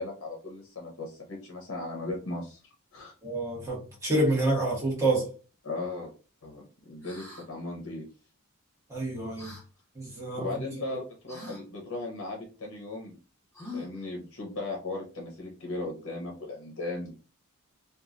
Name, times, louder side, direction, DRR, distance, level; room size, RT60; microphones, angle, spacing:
voice 1, 0.0-3.1 5.6-6.1 6.4-8.0 10.3-13.1 13.7-17.2, left 2 dB, 55° left, 0.7 m, -37 dB
voice 2, 3.2-5.3 8.9-9.5 9.9-10.5, right 2 dB, 15° right, 1.3 m, -28 dB
sound 1, 7.0-7.5 9.4-9.6 11.3-11.6 13.5-14.1, left 3 dB, 10° left, 1.3 m, -42 dB
3.0 x 2.3 x 2.5 m
head